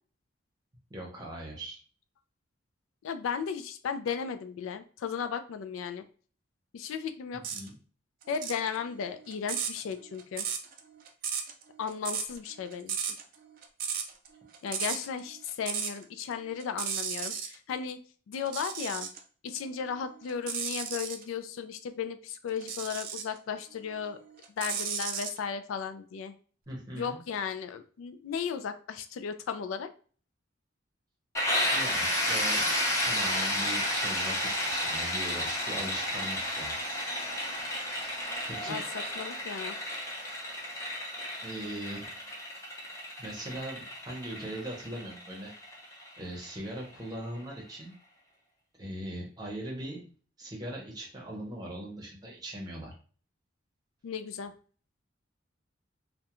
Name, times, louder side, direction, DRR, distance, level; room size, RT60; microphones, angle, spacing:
voice 1, 0.9-1.8 7.3-7.8 26.7-27.2 31.7-32.6 33.0-34.4 34.6-36.8 38.5-38.8 41.4-42.1 43.2-45.5 46.2-47.9 48.8-50.1 50.4-52.9, right 1 dB, 20° right, -2 dB, 0.8 m, -40 dB
voice 2, 3.0-6.0 6.7-7.4 8.3-10.5 11.8-13.0 14.6-18.0 18.3-19.1 19.4-24.2 24.6-26.4 27.0-29.9 38.7-38.8 39.2-39.8 54.0-54.5, left 6 dB, 90° left, 10 dB, 0.3 m, -35 dB
sound 1, 7.4-7.7 8.2-16.0 16.3-17.5 18.3-19.2 19.7-21.2 22.6-23.4 23.8-25.4, right 7 dB, 45° right, 0.3 m, -35 dB
sound 2, 31.3-46.9, left 1 dB, 15° left, 0.5 m, -32 dB
2.3 x 2.1 x 2.9 m, 0.40 s
head